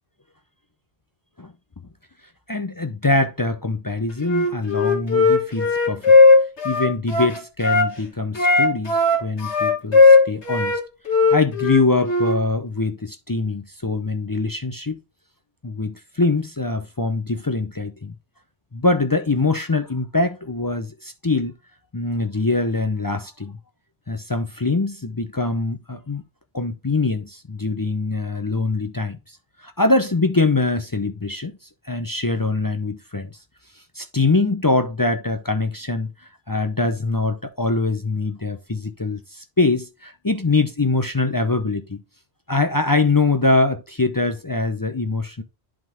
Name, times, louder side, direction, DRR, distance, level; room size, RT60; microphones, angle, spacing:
voice 1, 2.5-6.2 6.6-10.8 11.3-15.0 15.6-18.1 18.7-21.5 21.9-23.6 24.1-26.2 26.5-29.2 29.6-31.5 31.8-33.3 34.0-36.1 36.5-42.0 42.5-45.4, left 3 dB, 30° left, 0.4 m, -23 dB
Wind instrument woodwind instrument, 4.2-7.9 8.4-10.8 11.1-12.4, left 3 dB, 90° left, 1.8 m, -16 dB
11.0 x 3.7 x 3.5 m
omnidirectional pair, 1.1 m